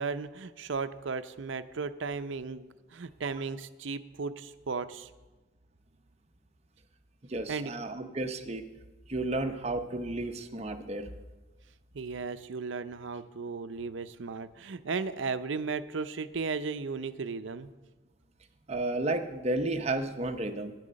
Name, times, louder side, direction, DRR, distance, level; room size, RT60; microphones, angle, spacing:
voice 1, 0.0-5.1 7.5-7.7 11.9-17.7, right 4 dB, 70° right, 12 dB, 0.6 m, -35 dB
voice 2, 7.2-8.7 9.1-11.1 18.7-20.7, right 2 dB, 35° right, 7 dB, 0.8 m, -32 dB
11.0 x 9.8 x 6.3 m, 1.2 s
head